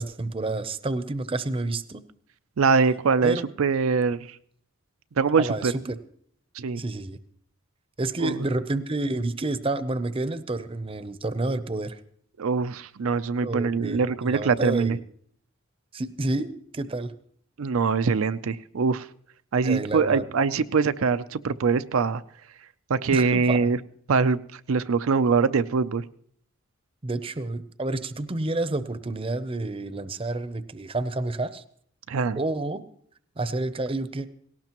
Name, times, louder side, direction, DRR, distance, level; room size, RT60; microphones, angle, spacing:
voice 1, 0.0-2.0 3.2-3.4 5.4-6.0 6.8-7.2 8.0-12.0 13.4-15.0 15.9-17.1 19.6-20.2 23.1-23.7 27.0-31.6 32.3-32.8 33.4-34.3, right 2 dB, 25° right, 13 dB, 0.6 m, -29 dB
voice 2, 2.6-4.3 5.2-5.7 6.5-6.8 8.2-8.4 12.4-15.0 17.6-19.1 19.5-22.2 22.9-23.8 24.1-26.1 32.1-32.4, right 5 dB, 85° right, 11 dB, 0.5 m, -23 dB
18.0 x 17.5 x 3.0 m, 0.63 s
head